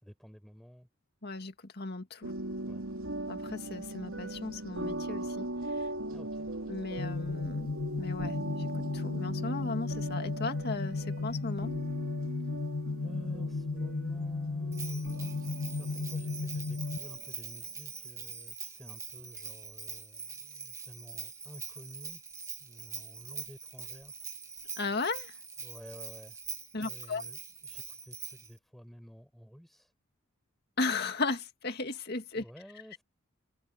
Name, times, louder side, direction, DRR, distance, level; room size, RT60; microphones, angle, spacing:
voice 1, 0.0-0.9 2.7-2.9 6.1-6.5 13.0-22.2 22.6-24.1 25.6-26.4 26.8-29.9 32.3-33.0, equal, ahead, 4.8 m, -51 dB
voice 2, 1.2-2.3 3.3-5.9 6.7-11.7 24.8-25.3 26.7-27.2 30.8-32.4, left 3 dB, 50° left, 2.1 m, -36 dB
sound 1, 2.2-17.3, right 1 dB, 85° right, 2.8 m, -40 dB
sound 2, 7.0-17.0, left 3 dB, 90° left, 0.6 m, -35 dB
Bell, 14.7-28.5, right 5 dB, 15° right, 1.2 m, -43 dB
head